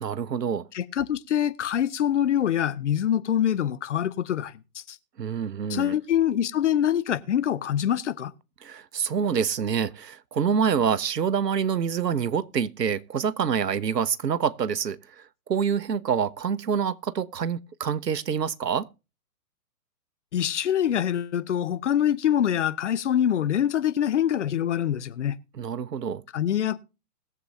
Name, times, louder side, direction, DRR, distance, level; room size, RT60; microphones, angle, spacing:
voice 1, 0.0-0.7 5.2-6.0 8.6-18.9 25.5-26.2, right 7 dB, 85° right, 0.8 m, -26 dB
voice 2, 0.7-5.0 5.7-8.3 20.3-25.4 26.3-26.8, left 10 dB, 50° left, 0.7 m, -25 dB
20.5 x 7.5 x 2.7 m
figure-of-eight pair, 130°, 48 cm